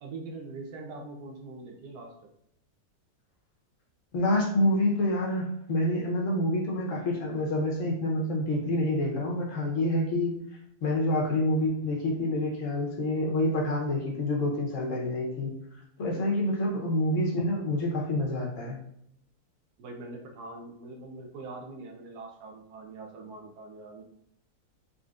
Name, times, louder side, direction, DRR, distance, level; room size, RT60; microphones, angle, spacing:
voice 1, 0.0-2.3 19.8-24.0, right 3 dB, 90° right, 2 dB, 1.2 m, -43 dB
voice 2, 4.1-10.4 10.8-15.5 16.0-18.8, left 1 dB, 60° left, -1 dB, 1.1 m, -27 dB
3.9 x 3.5 x 2.4 m, 0.74 s
omnidirectional pair, 1.6 m